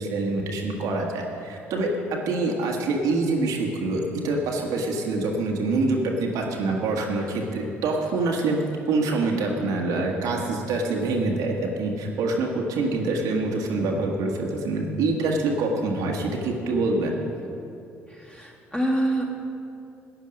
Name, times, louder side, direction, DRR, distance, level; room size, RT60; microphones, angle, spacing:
voice 1, 0.0-17.1, right 2 dB, 60° right, 0 dB, 1.5 m, -25 dB
voice 2, 18.1-19.3, right 1 dB, 15° left, -2 dB, 2.7 m, -26 dB
15.0 x 9.8 x 5.2 m, 2.7 s
figure-of-eight pair, 50°, 7 cm